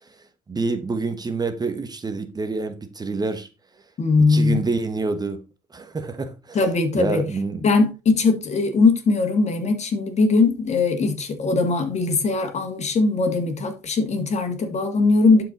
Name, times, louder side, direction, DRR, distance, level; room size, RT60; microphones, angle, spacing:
voice 1, 0.5-3.5 4.3-5.4 5.7-6.7 6.9-7.7, right 3 dB, 25° right, 1.0 m, -27 dB
voice 2, 4.0-4.6 6.5-7.2 7.6-15.4, left 3 dB, 40° left, 2.3 m, -20 dB
11.5 x 4.9 x 4.1 m
cardioid pair, 110°, 17 cm